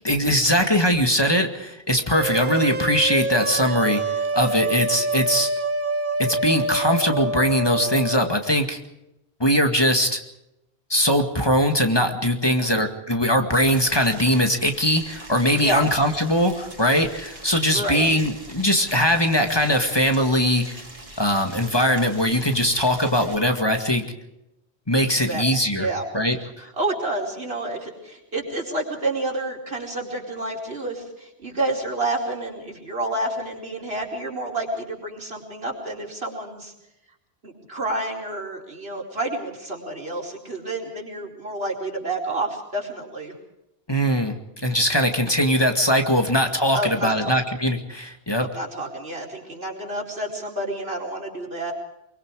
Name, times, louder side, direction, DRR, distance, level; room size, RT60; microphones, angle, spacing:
voice 1, 0.0-4.0 4.3-5.5 6.2-8.8 9.4-10.2 10.9-20.8 21.2-24.0 24.9-25.9 26.1-26.7 43.9-48.5, equal, 25° left, 5 dB, 2.1 m, -21 dB
sound 1, 2.1-8.3, right 2 dB, 50° right, 1.4 m, -26 dB
voice 2, 12.4-12.8 15.6-15.9 17.7-18.0 25.1-25.4 25.8-26.0 26.4-26.5 26.8-36.7 37.4-43.3 46.7-47.3 48.5-51.7, right 2 dB, 70° right, -1 dB, 4.9 m, -29 dB
Boiling, 13.5-23.3, right 1 dB, 35° right, 3.3 m, -43 dB
25.5 x 23.5 x 4.9 m, 0.86 s
omnidirectional pair, 1.1 m